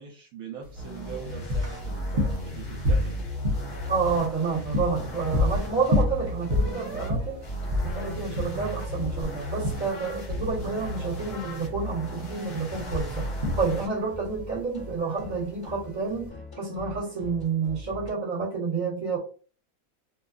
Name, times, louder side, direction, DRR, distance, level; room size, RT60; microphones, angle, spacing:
voice 1, 0.0-3.2, right 6 dB, 75° right, 0 dB, 1.0 m, -42 dB
sound 1, 0.6-16.3, left 1 dB, 50° right, 0.9 m, -30 dB
sound 2, 0.7-7.1 7.4-13.9, equal, 65° left, 1.4 m, -36 dB
sound 3, 1.0-18.1, left 1 dB, 20° left, 0.7 m, -43 dB
voice 2, 3.9-7.4 7.8-13.3 13.6-16.3 16.6-19.2, right 4 dB, 30° right, -5 dB, 1.3 m, -29 dB
2.7 x 2.2 x 2.3 m, 0.39 s
omnidirectional pair, 1.6 m